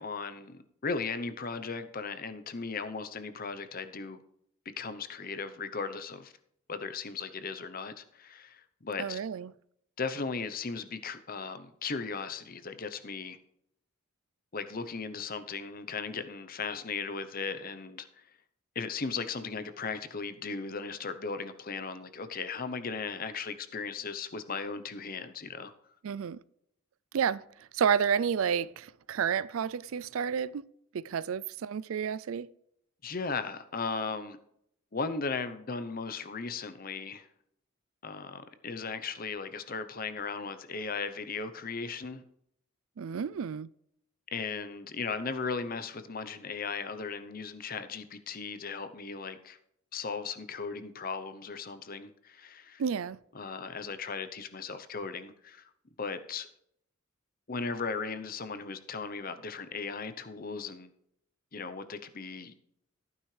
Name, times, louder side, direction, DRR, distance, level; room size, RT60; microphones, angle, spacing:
voice 1, 0.0-4.2 4.8-6.3 6.7-9.2 10.0-13.4 14.5-18.2 18.7-25.7 33.0-34.4 34.9-37.3 38.0-42.2 44.3-49.6 49.9-52.8 53.3-55.6 56.0-56.5 57.5-60.9 61.5-62.5, left 4 dB, 40° left, 0.8 m, -37 dB
voice 2, 9.0-9.5 26.0-26.4 27.1-27.4 27.7-30.7 30.9-32.5 43.0-43.7 52.8-53.2, right 7 dB, 70° right, 0.4 m, -30 dB
14.5 x 9.5 x 3.3 m
head